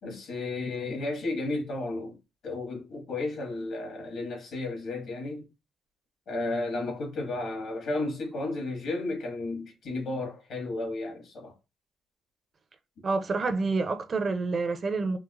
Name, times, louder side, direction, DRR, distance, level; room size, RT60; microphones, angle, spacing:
voice 1, 0.0-2.2 2.4-5.5 6.3-11.5, left 2 dB, 75° left, 1.8 m, -33 dB
voice 2, 13.0-15.2, right 3 dB, 40° right, 0.5 m, -28 dB
4.7 x 2.0 x 2.4 m
cardioid pair, 90°, 0 cm